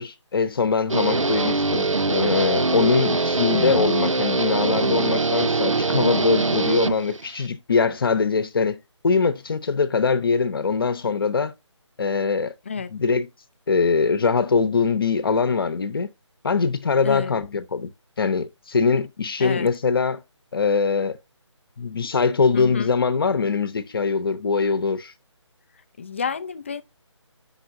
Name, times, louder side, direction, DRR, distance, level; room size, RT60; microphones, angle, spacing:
voice 1, 0.0-11.5 12.0-12.5 12.9-13.3 13.7-16.1 16.4-17.9 18.2-20.2 20.5-21.2 21.8-25.1, left 5 dB, 45° left, 0.9 m, -22 dB
Guitar, 0.9-7.5, right 3 dB, 85° right, 0.7 m, -22 dB
voice 2, 17.0-17.4 19.4-19.7 22.5-22.9 26.0-26.8, left 5 dB, 25° left, 0.4 m, -29 dB
8.6 x 5.7 x 2.6 m
figure-of-eight pair, 155°, 16 cm